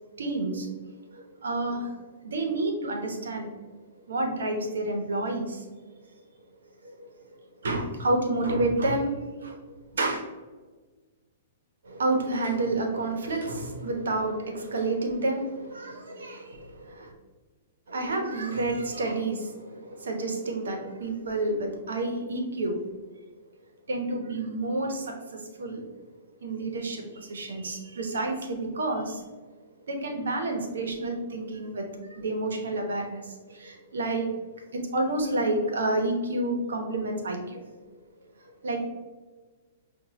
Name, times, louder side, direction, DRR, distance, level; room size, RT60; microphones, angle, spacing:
voice 1, 0.2-0.7 1.1-2.0 2.2-3.5 4.1-5.7 6.8-7.1 7.6-9.1 9.4-9.6 9.9-10.2 11.8-17.1 17.9-22.8 23.9-25.8 26.4-29.2 29.9-34.3 34.7-37.7 38.4-38.9, right 2 dB, 85° right, 3 dB, 0.9 m, -29 dB
5.9 x 2.4 x 2.9 m, 1.3 s
hypercardioid pair, 135°, 0 cm